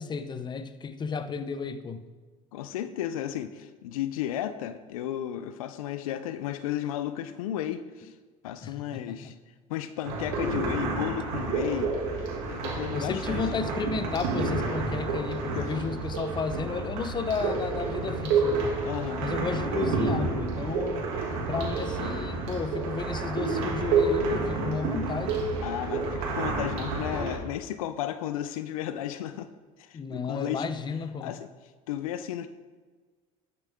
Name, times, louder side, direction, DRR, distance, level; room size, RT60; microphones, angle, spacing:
voice 1, 0.0-2.1 8.6-9.3 12.9-18.8 19.2-21.0 21.5-25.5 29.9-31.3, left 5 dB, 25° left, 11 dB, 0.7 m, -33 dB
voice 2, 2.5-8.1 8.4-9.3 9.7-11.9 12.5-13.4 15.5-15.7 18.8-19.3 25.6-29.5 29.8-30.7 31.2-31.5 31.9-32.5, left 11 dB, 90° left, 12 dB, 0.5 m, -33 dB
sound 1, 10.0-27.4, right 3 dB, 75° right, 2.3 m, -29 dB
11.5 x 6.9 x 3.6 m, 1.4 s
supercardioid pair, 95°, 17 cm